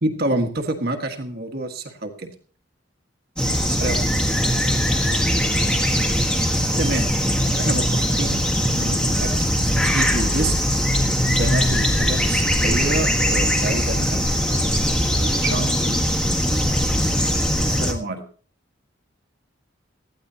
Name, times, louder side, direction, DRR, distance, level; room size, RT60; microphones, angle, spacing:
voice 1, 0.0-2.3 3.7-4.0 6.8-7.1 7.5-10.5 11.4-14.3 15.1-16.2 17.6-18.2, right 2 dB, 50° right, 5 dB, 1.7 m, -28 dB
sound 1, 3.4-17.9, equal, 5° left, 1.4 m, -21 dB
18.5 x 14.0 x 2.9 m, 0.42 s
head